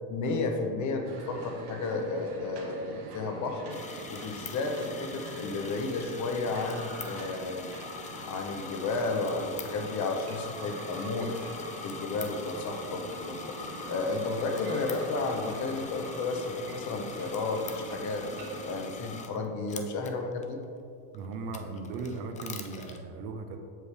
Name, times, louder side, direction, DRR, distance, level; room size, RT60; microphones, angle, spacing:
voice 1, 0.1-3.8 4.1-7.7 8.2-11.3 11.8-13.6 13.9-18.3 18.6-20.6, left 3 dB, 40° left, 4 dB, 0.9 m, -32 dB
sound 1, 1.0-18.9, right 3 dB, 85° right, 1.4 m, -44 dB
sound 2, 3.7-19.4 19.7-20.4 21.1-23.0, left 5 dB, 20° left, 0.4 m, -43 dB
voice 2, 21.1-23.6, right 4 dB, 65° right, 5 dB, 1.0 m, -37 dB
7.7 x 6.4 x 3.4 m, 2.5 s
supercardioid pair, 105°, 45 cm